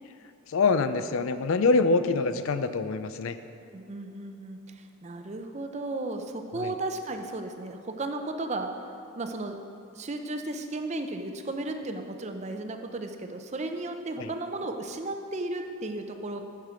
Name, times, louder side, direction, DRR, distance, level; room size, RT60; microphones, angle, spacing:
voice 1, 0.5-3.4 6.5-6.7 14.2-14.3, left 4 dB, 60° left, 11 dB, 0.4 m, -25 dB
voice 2, 3.7-8.7 9.2-9.6 9.9-16.4, right 2 dB, 30° right, 6 dB, 0.5 m, -34 dB
9.4 x 6.6 x 5.0 m, 2.6 s
head